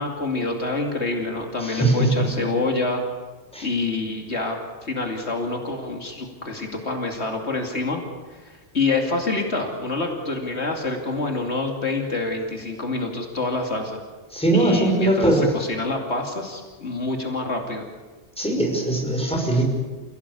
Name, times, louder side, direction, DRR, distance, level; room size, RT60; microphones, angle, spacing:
voice 1, 0.0-3.0 3.6-8.0 8.3-14.0 14.5-17.8, left 3 dB, 75° left, 2 dB, 2.9 m, -27 dB
voice 2, 1.6-2.3 3.5-3.7 14.3-15.5 18.4-19.6, right 2 dB, 5° left, 0 dB, 5.6 m, -20 dB
28.5 x 17.0 x 8.4 m, 1.3 s
omnidirectional pair, 1.1 m